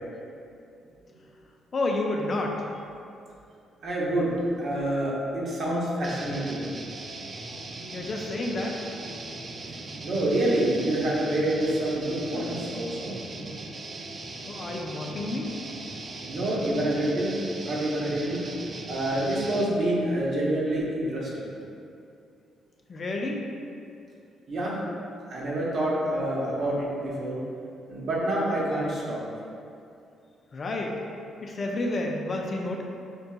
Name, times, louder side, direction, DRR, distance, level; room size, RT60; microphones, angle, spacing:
voice 1, 1.7-2.7 7.9-8.8 14.4-15.6 22.9-23.5 30.5-31.0 31.4-32.8, left 2 dB, 40° left, 0 dB, 0.4 m, -30 dB
voice 2, 3.8-4.3 4.6-6.7 10.0-13.1 16.3-17.3 17.6-18.4 18.9-21.5 24.5-24.8 25.3-27.4 27.9-29.2, right 1 dB, 60° right, -5 dB, 0.8 m, -27 dB
sound 1, 6.0-19.8, right 2 dB, 40° right, 0.3 m, -39 dB
4.4 x 2.7 x 2.2 m, 2.5 s
cardioid pair, 90°, 0 cm